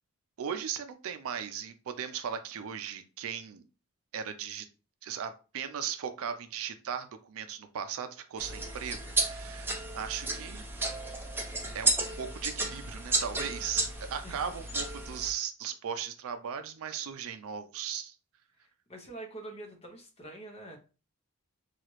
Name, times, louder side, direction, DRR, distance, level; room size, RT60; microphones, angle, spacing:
voice 1, 0.4-3.6 4.1-4.7 5.0-10.6 11.7-18.1, right 7 dB, 65° right, 9 dB, 0.4 m, -37 dB
sound 1, 8.4-15.3, right 2 dB, 10° right, 0.5 m, -33 dB
voice 2, 18.6-20.8, right 2 dB, 30° left, 3 dB, 0.7 m, -45 dB
2.9 x 2.4 x 3.0 m, 0.34 s
head